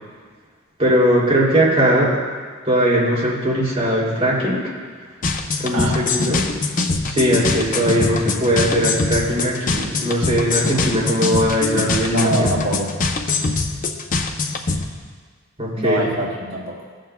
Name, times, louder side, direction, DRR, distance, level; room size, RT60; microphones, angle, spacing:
voice 1, 0.8-2.1 2.6-4.6 5.6-6.4 7.1-12.5 15.6-16.1, equal, 30° right, -7 dB, 2.8 m, -19 dB
sound 1, 5.2-14.8, left 3 dB, 40° left, 0.6 m, -23 dB
voice 2, 5.7-6.3 12.1-12.9 15.8-16.8, right 1 dB, 75° right, -3 dB, 1.2 m, -24 dB
17.0 x 7.6 x 2.2 m, 1.6 s
head